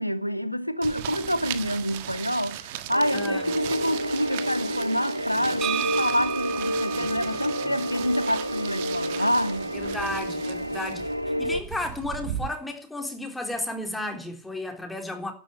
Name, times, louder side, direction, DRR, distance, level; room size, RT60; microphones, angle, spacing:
voice 1, 0.0-9.7, equal, 90° left, 1.0 m, -27 dB
sound 1, 0.8-12.5, right 12 dB, 50° right, 1.5 m, -38 dB
sound 2, 2.9-11.6, equal, 90° right, 0.9 m, -30 dB
voice 2, 3.1-3.5 7.0-7.7 9.7-15.3, left 2 dB, 5° left, 3.6 m, -34 dB
sound 3, 5.6-9.4, right 12 dB, 25° right, 1.3 m, -35 dB
12.5 x 10.5 x 9.8 m
figure-of-eight pair, 90°, 0 cm